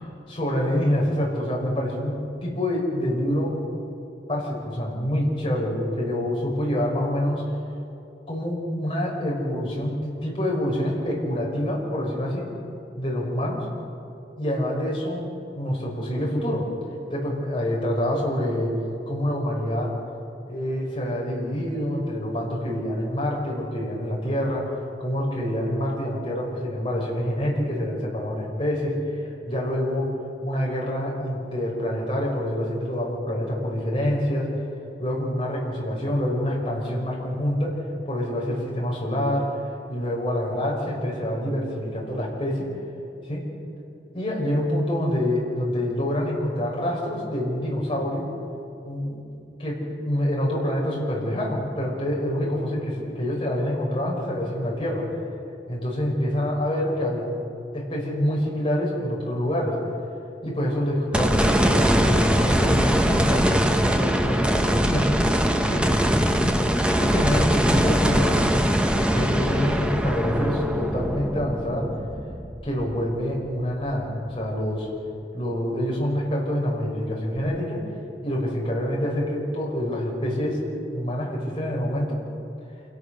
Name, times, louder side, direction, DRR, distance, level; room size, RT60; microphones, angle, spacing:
voice 1, 0.3-2.1 2.4-3.5 4.3-7.4 8.3-12.4 13.0-13.7 14.4-15.3 15.5-16.7 17.1-18.7 19.1-19.9 20.5-24.7 25.0-30.1 30.4-34.5 35.0-37.8 38.1-39.6 39.9-42.7 43.3-43.4 44.1-48.2 48.8-49.2 49.6-55.1 55.7-57.4 57.7-59.8 60.4-64.4 64.7-65.2 65.6-65.8 66.3-66.5 66.9-68.4 68.9-71.9 72.6-74.9 75.3-77.8 78.2-80.6 80.9-82.2, equal, 30° left, -3 dB, 5.9 m, -26 dB
sound 1, 61.1-73.5 73.9-74.0 77.4-77.5, equal, 5° right, 0.9 m, -22 dB
27.5 x 17.5 x 6.5 m, 2.7 s
head